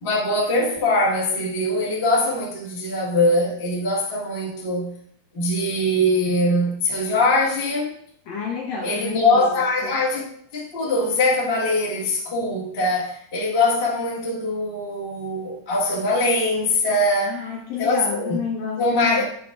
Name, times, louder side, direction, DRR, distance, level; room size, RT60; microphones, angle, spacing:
voice 1, 0.0-4.9 5.3-7.9 8.8-10.2 10.5-17.4 17.8-18.4 18.8-19.2, left 1 dB, 55° left, 0.6 m, -22 dB
voice 2, 8.3-10.0 17.2-19.2, left 6 dB, 70° left, 1.7 m, -30 dB
8.2 x 6.4 x 2.4 m
omnidirectional pair, 4.2 m